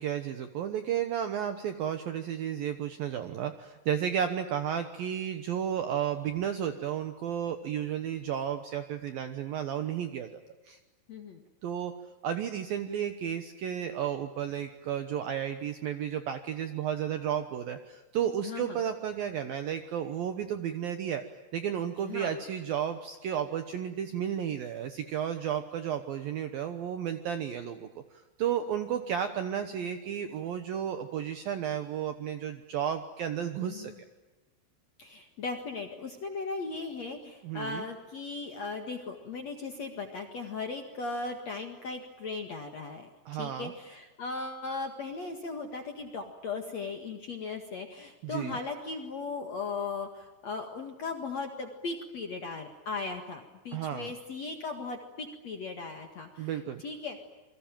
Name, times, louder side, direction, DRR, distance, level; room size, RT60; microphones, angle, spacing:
voice 1, 0.0-10.8 11.6-11.9 12.2-21.2 21.5-27.9 28.4-33.9 37.4-37.9 43.3-43.7 48.2-48.6 53.7-54.1 56.4-56.8, right 9 dB, 70° right, 9 dB, 2.2 m, -33 dB
voice 2, 11.1-11.4 18.4-18.8 22.0-22.4 33.6-34.0 35.0-57.2, left 4 dB, 55° left, 5 dB, 2.1 m, -38 dB
28.0 x 23.0 x 9.1 m, 1.2 s
omnidirectional pair, 5.6 m